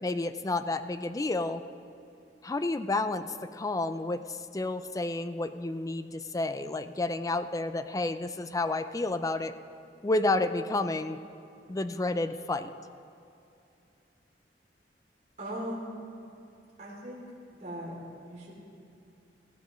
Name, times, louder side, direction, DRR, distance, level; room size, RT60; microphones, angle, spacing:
voice 1, 0.0-1.6 2.4-9.5 10.0-11.2 11.7-12.7, left 2 dB, 20° left, 11 dB, 0.4 m, -30 dB
voice 2, 15.4-16.0 16.8-17.3 17.5-18.0 18.2-18.5, equal, 45° right, -5 dB, 3.0 m, -38 dB
16.0 x 15.5 x 3.1 m, 2.7 s
head